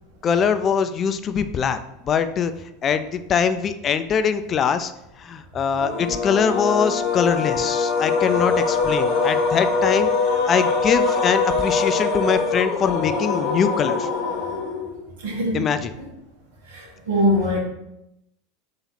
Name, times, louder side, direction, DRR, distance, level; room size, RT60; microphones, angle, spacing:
voice 1, 0.2-1.8 2.1-2.5 2.8-4.9 5.2-10.1 10.5-14.1 15.5-15.9, left 7 dB, 35° left, 10 dB, 0.3 m, -22 dB
sound 1, 5.7-15.1, left 4 dB, 55° left, 0.8 m, -23 dB
voice 2, 15.2-15.5 16.7-17.6, equal, 75° right, -1 dB, 1.3 m, -21 dB
4.1 x 2.9 x 4.1 m, 0.83 s
hypercardioid pair, 90°, 0 cm